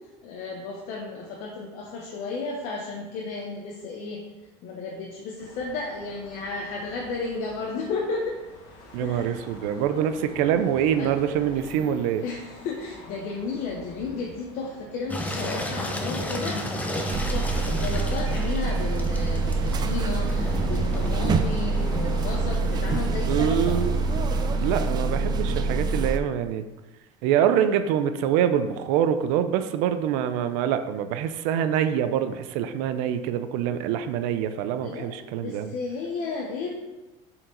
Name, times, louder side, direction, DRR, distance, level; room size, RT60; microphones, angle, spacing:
voice 1, 0.2-4.2 4.6-8.4 9.0-9.4 11.0-11.1 12.2-16.8 17.1-23.8 34.8-36.7, left 3 dB, 65° left, -1 dB, 1.0 m, -33 dB
sound 1, 5.4-24.9, left 3 dB, 85° left, 1.5 m, -45 dB
voice 2, 8.9-12.2 23.2-24.0 24.6-26.6 27.2-35.7, right 9 dB, 85° right, 10 dB, 0.5 m, -25 dB
Engine, 15.1-22.4, left 1 dB, 10° left, 0.7 m, -33 dB
sound 2, 17.1-26.2, right 3 dB, 30° right, 0.4 m, -25 dB
6.4 x 4.5 x 3.9 m, 1.1 s
cardioid pair, 150°, 14 cm